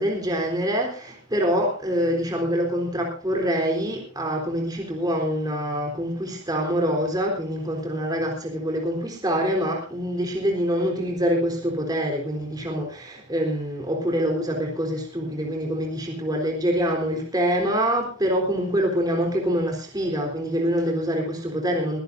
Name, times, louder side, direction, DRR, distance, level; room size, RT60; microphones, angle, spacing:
voice 1, 0.0-22.0, equal, 20° right, 3.8 m, -25 dB
23.5 x 15.0 x 2.7 m
head